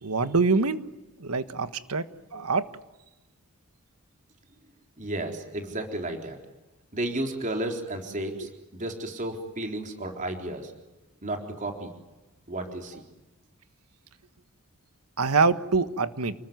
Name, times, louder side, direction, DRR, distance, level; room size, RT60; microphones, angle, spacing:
voice 1, 0.0-0.8 1.2-2.1 2.3-2.7 15.2-16.3, right 4 dB, 85° right, 11 dB, 1.5 m, -24 dB
voice 2, 5.0-6.4 6.9-10.7 11.2-11.9 12.5-13.0, right 1 dB, 35° right, 3 dB, 3.9 m, -33 dB
30.0 x 20.0 x 9.4 m, 1.1 s
head